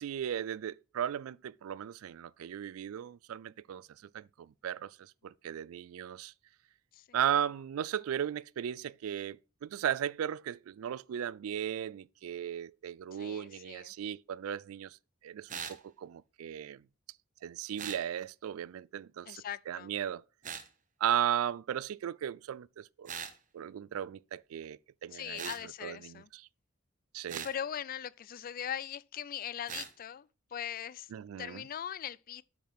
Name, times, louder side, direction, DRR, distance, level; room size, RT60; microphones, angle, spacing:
voice 1, 0.0-3.9 4.1-6.3 7.1-15.0 15.2-16.8 17.4-20.2 21.0-23.1 23.5-25.5 25.8-26.5 27.1-27.5 31.1-31.6, right 9 dB, 85° right, 0.3 m, -36 dB
voice 2, 13.1-13.9 19.3-19.9 25.1-26.3 27.3-32.4, left 9 dB, 45° left, 0.3 m, -41 dB
sound 1, 15.5-15.8 17.8-18.0 20.4-20.7 23.1-23.4 25.4-25.6 27.3-27.5 29.7-29.9, right 7 dB, 40° right, 0.9 m, -40 dB
8.5 x 6.0 x 3.5 m
head